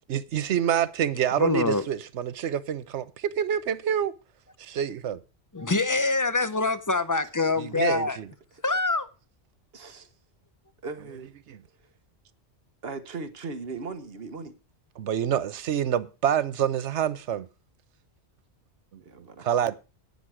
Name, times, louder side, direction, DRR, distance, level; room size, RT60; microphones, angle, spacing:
voice 1, 0.1-4.1 4.6-5.2 7.6-8.3 11.5-11.6 15.0-17.5 19.4-19.8, right 9 dB, 85° right, 1.1 m, -27 dB
voice 2, 1.4-1.8 5.5-8.2 8.6-9.1, left 3 dB, 20° left, 0.6 m, -25 dB
voice 3, 9.7-10.1 10.8-11.3 12.8-14.5 19.0-19.8, right 4 dB, 60° right, 1.4 m, -38 dB
10.5 x 9.6 x 4.8 m
omnidirectional pair, 1.1 m